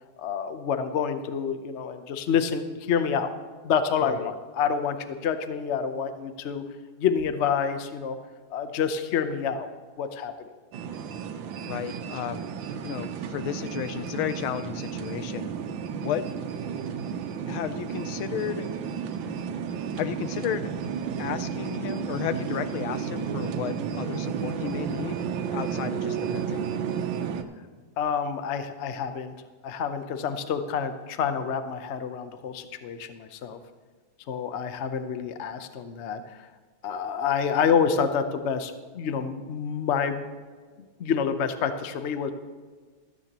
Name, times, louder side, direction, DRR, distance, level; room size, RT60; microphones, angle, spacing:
voice 1, 0.2-3.3 3.6-6.6 7.0-8.2 8.5-9.7 10.0-10.3 28.0-29.3 29.6-33.6 34.3-36.4 36.8-40.3 41.0-42.3, left 7 dB, 65° left, 9 dB, 0.7 m, -28 dB
sound 1, 10.7-27.4, right 7 dB, 70° right, 1.4 m, -32 dB
voice 2, 11.7-12.5 12.8-16.3 16.6-16.7 17.5-18.7 20.0-20.7 21.2-26.7, left 11 dB, 85° left, 12 dB, 1.5 m, -33 dB
16.0 x 13.0 x 3.0 m, 1.5 s
omnidirectional pair, 2.3 m